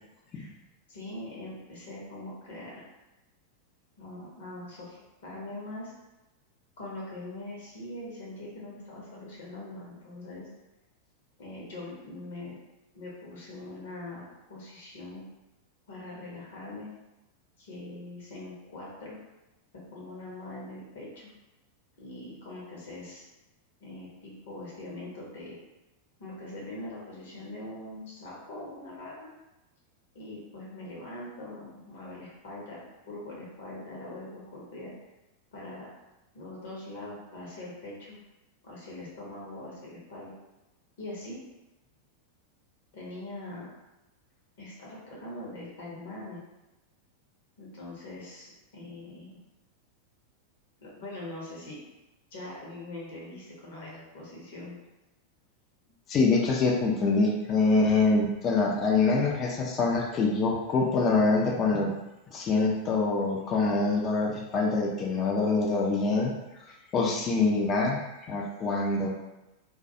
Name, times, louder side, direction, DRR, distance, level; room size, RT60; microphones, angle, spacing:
voice 1, 0.9-2.9 4.0-5.9 6.8-10.5 11.4-12.6 12.9-14.2 14.5-15.2 15.9-16.9 17.6-19.2 19.9-21.3 22.0-23.2 23.8-25.5 26.2-29.3 30.1-32.8 33.1-34.9 35.5-35.9 36.3-38.2 38.6-40.3 41.0-41.4 42.9-43.7 44.6-46.4 47.6-49.4 50.8-51.8 52.3-54.8, left 2 dB, 60° left, -5 dB, 0.8 m, -42 dB
voice 2, 56.1-61.9 62.3-66.3 66.9-68.0 68.3-69.1, left 3 dB, 30° left, -1 dB, 0.4 m, -25 dB
2.2 x 2.2 x 2.7 m, 1.0 s
figure-of-eight pair, 90°, 0 cm